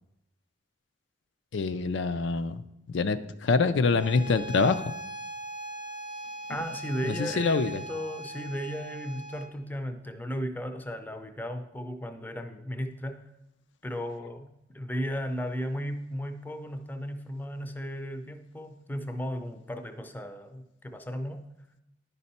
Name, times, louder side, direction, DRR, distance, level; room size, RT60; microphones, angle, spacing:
voice 1, 1.5-4.8 7.0-7.8, left 4 dB, 70° left, 10 dB, 0.4 m, -26 dB
Bowed string instrument, 4.0-9.6, right 1 dB, 25° right, 0.8 m, -40 dB
voice 2, 6.5-13.2 13.8-14.5 14.7-21.4, equal, 10° left, 7 dB, 0.5 m, -35 dB
10.0 x 5.4 x 4.2 m, 0.87 s
head